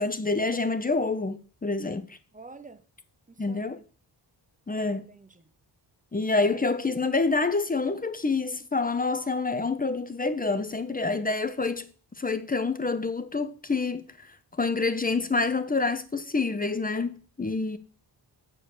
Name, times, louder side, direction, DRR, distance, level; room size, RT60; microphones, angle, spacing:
voice 1, 0.0-2.2 3.4-3.8 4.7-5.1 6.1-11.9 12.2-14.3 14.6-17.8, left 3 dB, 20° left, 0.6 m, -27 dB
voice 2, 2.3-2.8 3.3-3.8 5.1-5.5, right 3 dB, 20° right, 0.8 m, -48 dB
7.6 x 4.6 x 6.6 m
wide cardioid pair, 130°, 43 cm